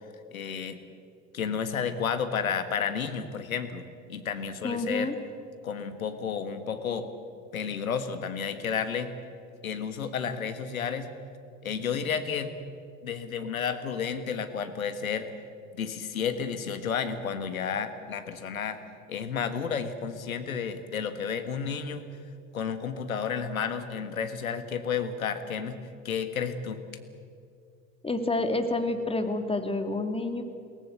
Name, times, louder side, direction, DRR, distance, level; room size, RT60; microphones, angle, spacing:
voice 1, 0.3-0.8 1.3-3.8 4.1-5.1 5.6-7.1 7.5-9.1 9.6-11.1 11.6-12.5 13.0-15.3 15.8-18.8 19.1-22.0 22.5-25.8 26.0-26.8, left 6 dB, 85° left, 10 dB, 1.5 m, -31 dB
voice 2, 4.6-5.1 28.0-30.4, left 2 dB, 15° left, 7 dB, 2.6 m, -28 dB
22.0 x 18.5 x 8.2 m, 2.4 s
hypercardioid pair, 65°, 40 cm